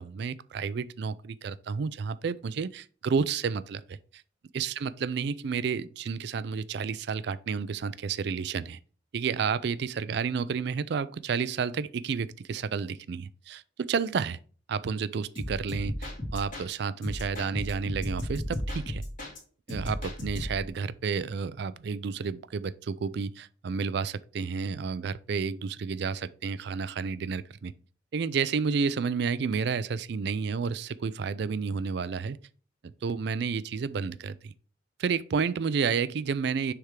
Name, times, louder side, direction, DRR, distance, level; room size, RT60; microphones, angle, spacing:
voice 1, 0.0-4.2 4.5-8.8 9.1-14.4 14.7-16.0 16.3-19.0 19.7-27.7 28.1-32.4 32.8-34.5 35.0-36.7, right 5 dB, 60° right, 0.4 m, -31 dB
sound 1, 15.4-16.7 17.0-19.4 19.7-20.7, left 1 dB, 45° left, 2.4 m, -35 dB
6.5 x 3.5 x 4.7 m
head